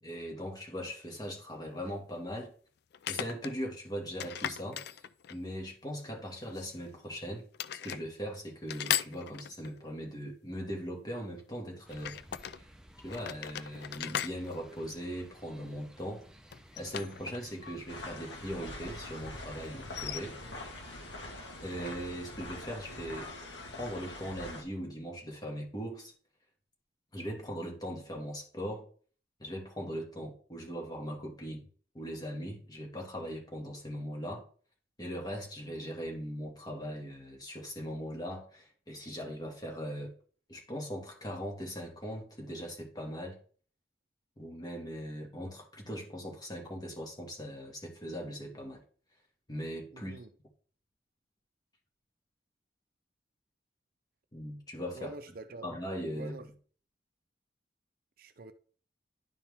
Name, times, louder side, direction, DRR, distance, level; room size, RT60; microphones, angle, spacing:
voice 1, 0.0-2.5 3.1-12.2 13.0-16.3 16.8-20.4 21.6-23.3 23.8-26.1 27.1-28.9 29.4-31.7 31.9-34.4 35.0-40.1 40.5-43.4 44.4-48.8 49.5-50.2 54.3-55.1 55.6-56.3, equal, 25° left, 2.0 m, -40 dB
sound 1, 0.8-0.9 2.9-3.6 4.2-5.5 6.5-7.2 7.5-8.0 8.7-9.8 11.9-12.6 13.1-15.5 16.5-17.8 18.0-18.1 19.8-20.2, left 10 dB, 65° left, 0.4 m, -38 dB
sound 2, 11.9-21.7, equal, 5° right, 0.8 m, -56 dB
sound 3, 17.9-24.6, left 2 dB, 80° left, 1.7 m, -44 dB
voice 2, 49.9-50.3 55.0-55.7 56.1-56.5 58.2-58.5, right 3 dB, 55° right, 0.6 m, -45 dB
11.0 x 4.4 x 3.6 m
head